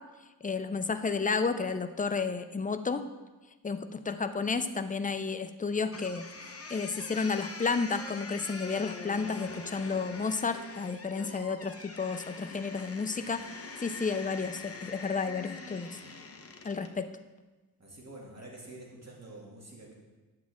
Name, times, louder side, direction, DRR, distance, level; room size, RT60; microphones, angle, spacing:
voice 1, 0.4-3.0 3.6-6.2 6.7-13.5 13.8-16.0 16.6-17.1, left 4 dB, 20° left, 9 dB, 0.5 m, -32 dB
sound 1, 5.9-17.0, left 4 dB, 35° left, 0.9 m, -44 dB
voice 2, 17.8-19.9, right 2 dB, 40° right, -3 dB, 2.4 m, -47 dB
9.5 x 7.4 x 3.6 m, 1.2 s
wide cardioid pair, 70°, 39 cm